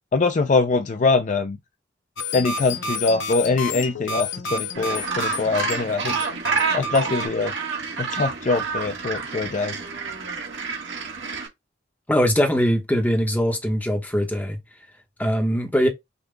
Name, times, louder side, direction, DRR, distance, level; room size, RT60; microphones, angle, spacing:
voice 1, 0.1-1.6 2.3-6.2 6.7-7.5 8.0-9.8, left 3 dB, 40° left, 0.4 m, -23 dB
sound 1, 2.2-7.3, left 3 dB, 80° left, 0.7 m, -30 dB
Gull seagull, 4.7-11.5, right 5 dB, 75° right, 1.6 m, -28 dB
voice 2, 12.1-14.6 15.2-15.9, equal, 10° left, 1.0 m, -21 dB
5.3 x 2.3 x 3.3 m
head